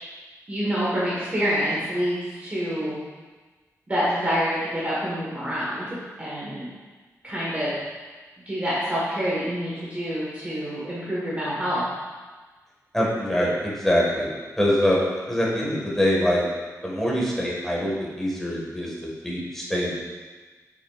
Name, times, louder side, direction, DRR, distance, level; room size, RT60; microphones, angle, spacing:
voice 1, 0.5-3.0 3.9-6.6 7.2-7.7 8.4-11.8, equal, 25° right, -8 dB, 1.5 m, -27 dB
voice 2, 12.9-14.3 14.6-16.4 16.8-18.9 19.2-20.0, equal, 5° left, -5 dB, 1.7 m, -24 dB
8.1 x 6.0 x 2.5 m, 1.3 s
wide cardioid pair, 135°, 6 cm